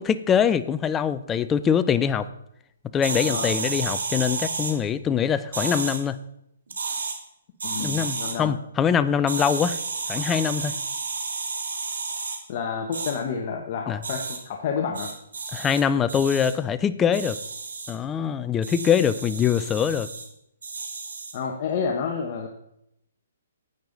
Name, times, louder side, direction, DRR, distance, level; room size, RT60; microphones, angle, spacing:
voice 1, 0.0-2.3 2.9-6.2 7.8-9.8 10.1-10.7 13.9-14.0 15.5-17.4 17.9-20.1, left 8 dB, 15° left, 12 dB, 0.4 m, -23 dB
sound 1, 3.0-4.7 5.5-6.0 6.7-7.1 7.6-8.3 9.3-12.4 12.9-13.1 14.0-14.4 14.9-15.8 16.1-16.5 17.1-17.9 18.6-20.2 20.6-21.4, right 4 dB, 90° right, 2.5 m, -31 dB
voice 2, 3.2-3.6 7.6-8.5 12.5-15.1 21.3-22.5, left 6 dB, 40° left, 2 dB, 1.1 m, -29 dB
10.5 x 8.8 x 4.0 m, 0.78 s
hypercardioid pair, 155°, 0 cm